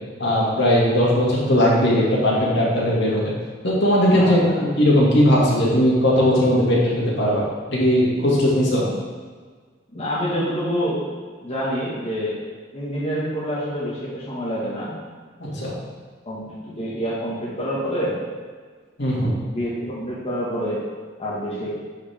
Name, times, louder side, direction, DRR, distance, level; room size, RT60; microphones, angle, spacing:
voice 1, 0.2-3.3 3.6-8.8 15.4-15.7 19.0-19.4, equal, 65° left, -5 dB, 2.2 m, -18 dB
voice 2, 4.1-4.6 8.7-8.9 9.9-11.1 11.4-12.4 12.7-15.0 16.2-18.2 19.5-20.8 21.2-21.7, equal, 35° left, -7 dB, 1.6 m, -27 dB
10.5 x 4.9 x 3.5 m, 1.5 s
head